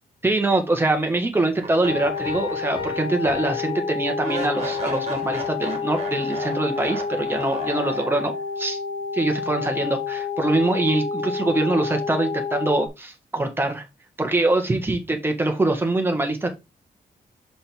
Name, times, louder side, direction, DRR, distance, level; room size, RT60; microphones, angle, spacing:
voice 1, 0.2-8.8 9.1-13.8 14.2-16.5, right 2 dB, 15° right, 1.4 m, -24 dB
sound 1, 1.6-2.9 3.2-3.3 4.2-8.5, right 3 dB, 40° right, 2.1 m, -35 dB
sound 2, 1.8-12.9, left 5 dB, 70° left, 1.6 m, -29 dB
sound 3, 2.2-4.7, left 6 dB, 35° left, 3.2 m, -38 dB
5.9 x 5.4 x 3.4 m
wide cardioid pair, 170°, 17 cm